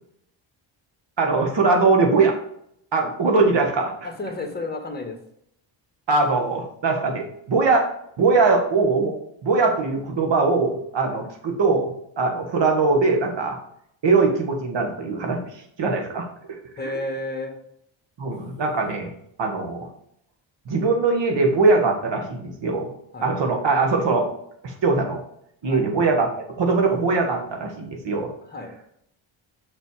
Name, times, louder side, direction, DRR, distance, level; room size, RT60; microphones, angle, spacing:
voice 1, 1.2-2.3 2.9-4.1 6.1-7.9 8.2-9.1 9.4-11.9 12.2-13.6 14.0-15.5 15.8-16.6 16.8-17.0 18.2-19.1 19.4-19.9 20.6-22.9 23.2-24.3 24.6-25.2 25.6-28.3, right 3 dB, 60° right, 2 dB, 1.8 m, -21 dB
voice 2, 4.0-5.2 11.1-11.2 16.8-17.5 23.1-23.3 25.6-25.8 28.5-28.7, left 2 dB, 20° left, 4 dB, 1.6 m, -31 dB
6.0 x 5.8 x 4.8 m, 0.71 s
cardioid pair, 90°, 49 cm